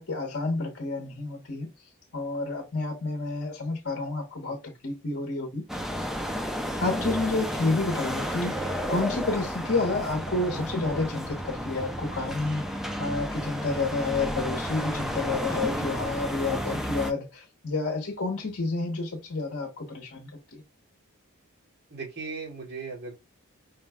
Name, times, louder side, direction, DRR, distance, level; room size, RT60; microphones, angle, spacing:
voice 1, 0.0-1.7 2.1-5.7 6.8-20.6, left 3 dB, 55° left, 0.9 m, -30 dB
sound 1, 5.7-17.1, equal, ahead, 0.4 m, -32 dB
voice 2, 21.9-23.2, right 4 dB, 50° right, 2.1 m, -37 dB
4.9 x 2.2 x 3.4 m
head